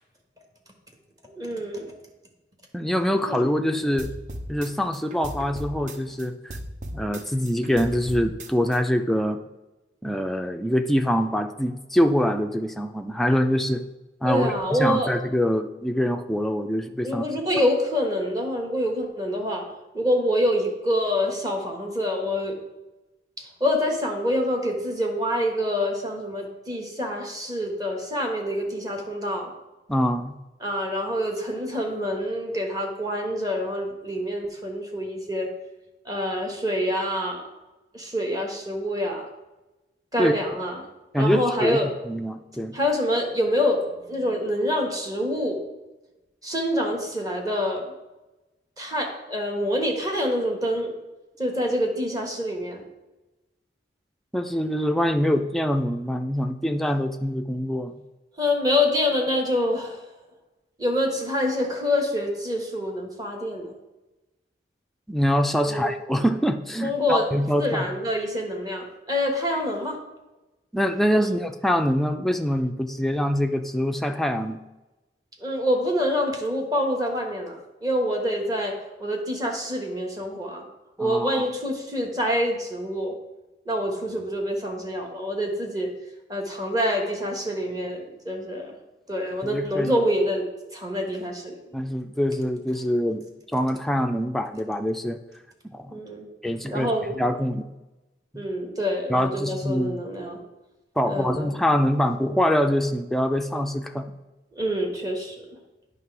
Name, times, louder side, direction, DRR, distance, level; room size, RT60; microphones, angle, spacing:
voice 1, 1.2-1.9 3.3-3.4 14.2-15.1 17.0-19.7 19.9-22.5 23.4-29.5 30.6-35.5 36.0-37.4 37.9-39.2 40.1-40.9 41.2-41.9 42.7-45.6 46.4-47.9 48.8-50.9 51.4-52.8 58.4-60.0 60.8-63.7 65.6-65.9 66.8-67.2 67.6-70.0 71.1-71.4 75.4-78.7 79.0-80.6 81.0-83.1 83.6-85.9 86.3-88.7 89.1-90.4 90.7-91.5 95.9-96.3 96.7-97.2 98.3-100.4 101.0-101.5 104.6-105.4, equal, 20° right, 2 dB, 1.2 m, -26 dB
voice 2, 2.7-4.1 4.5-6.6 6.9-9.4 10.0-13.8 14.2-17.3 29.9-30.4 40.2-40.3 41.1-42.8 54.3-57.9 65.1-67.9 70.7-74.6 81.0-81.5 89.4-89.9 91.7-93.2 93.5-95.2 95.7-96.0 96.4-96.9 97.2-97.7 98.3-98.4 99.1-100.0 101.0-104.1, equal, ahead, 6 dB, 0.4 m, -24 dB
sound 1, 4.0-6.2 6.5-8.8, right 1 dB, 40° right, 0.6 m, -37 dB
9.2 x 3.3 x 5.9 m, 1.0 s
head